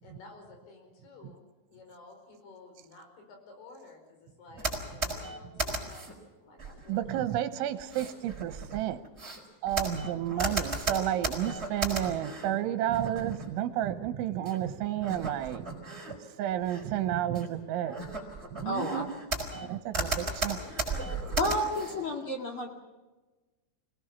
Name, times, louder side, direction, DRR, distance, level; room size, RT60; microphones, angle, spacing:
voice 1, 0.0-6.0 6.4-7.3 10.3-10.6 17.8-18.2 20.2-22.3, left 3 dB, 70° left, 7.0 m, -51 dB
sound 1, 4.6-6.1 6.6-7.2 7.8-12.5 12.9-13.5 14.4-14.6 15.0-16.1 16.5-16.9 17.3-17.5 17.9-19.7 19.9-22.0, right 3 dB, 15° right, 4.2 m, -35 dB
voice 2, 6.9-9.0 9.6-15.8 16.4-17.9 18.6-19.1 19.6-20.6, right 12 dB, 85° right, 3.3 m, -31 dB
voice 3, 18.6-19.0 21.3-22.7, left 1 dB, 40° left, 2.2 m, -31 dB
25.5 x 18.5 x 7.2 m
omnidirectional pair, 5.4 m